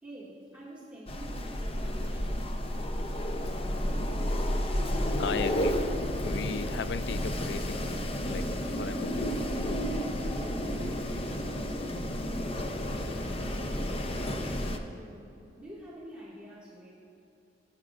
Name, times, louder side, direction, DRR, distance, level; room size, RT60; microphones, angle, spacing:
voice 1, 0.0-2.5 14.7-16.9, right 1 dB, 5° right, -9 dB, 1.9 m, -47 dB
Wind, 1.1-14.8, equal, 35° left, 0.6 m, -31 dB
voice 2, 5.2-5.8 6.2-7.9 8.2-9.1, left 6 dB, 70° left, 14 dB, 0.3 m, -36 dB
19.0 x 8.8 x 2.5 m, 2.7 s
head